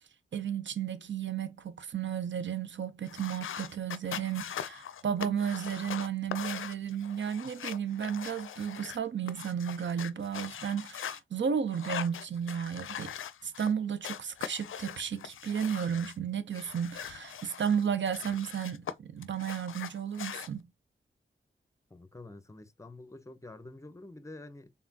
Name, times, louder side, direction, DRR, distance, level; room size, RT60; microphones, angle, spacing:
voice 1, 0.3-13.1 13.4-20.6, right 8 dB, 65° right, 0.6 m, -33 dB
sound 1, 3.1-11.2 11.7-13.7 14.0-16.2 16.5-18.9 19.2-20.5, left 9 dB, 85° left, 0.4 m, -41 dB
voice 2, 21.9-24.7, left 2 dB, 15° left, 0.6 m, -48 dB
4.1 x 3.6 x 2.7 m
wide cardioid pair, 80°, 20 cm